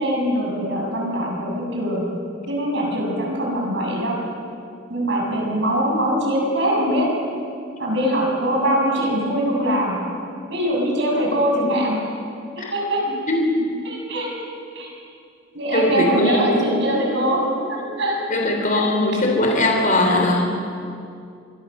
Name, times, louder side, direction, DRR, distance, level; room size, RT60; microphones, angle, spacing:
voice 1, 0.0-2.0 2.5-4.2 4.9-7.1 7.8-10.0 10.5-12.0 12.7-13.0 13.8-14.3 14.8-14.9 15.5-18.1 18.7-18.8, equal, 60° right, -1 dB, 7.2 m, -22 dB
voice 2, 15.7-16.6 18.3-20.5, left 1 dB, 40° left, 1 dB, 3.6 m, -20 dB
25.5 x 23.0 x 6.7 m, 2.5 s
head